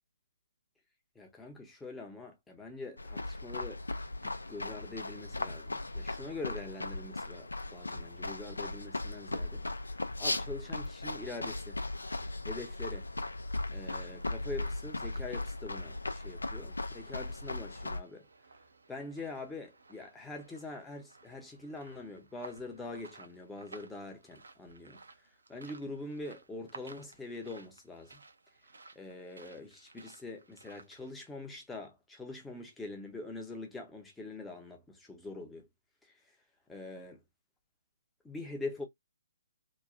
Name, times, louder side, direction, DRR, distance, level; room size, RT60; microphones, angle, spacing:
voice 1, 1.2-3.8 4.2-9.7 10.2-11.8 12.5-13.1 13.7-18.3 18.9-25.0 25.5-28.2 29.0-35.7 36.0-36.3 36.7-37.2 38.2-38.8, left 2 dB, 5° left, 0.7 m, -44 dB
sound 1, 3.0-18.0, left 2 dB, 75° left, 0.5 m, -38 dB
sound 2, 13.7-31.1, right 3 dB, 70° right, 0.6 m, -56 dB
2.9 x 2.2 x 2.5 m
figure-of-eight pair, 135°, 0 cm